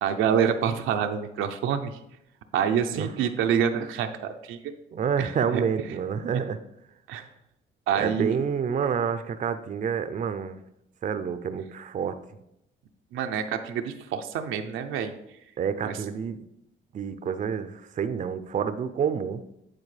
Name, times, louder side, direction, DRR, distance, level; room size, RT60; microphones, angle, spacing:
voice 1, 0.0-2.0 2.5-4.7 5.2-5.6 7.1-7.3 7.9-8.4 13.1-15.1 15.8-16.0, right 8 dB, 85° right, 6 dB, 0.6 m, -27 dB
voice 2, 4.9-6.6 7.9-10.6 11.0-12.1 15.6-16.4 16.9-19.4, right 7 dB, 40° right, 10 dB, 0.5 m, -28 dB
9.7 x 4.2 x 3.2 m, 0.80 s
cardioid pair, 90°, 20 cm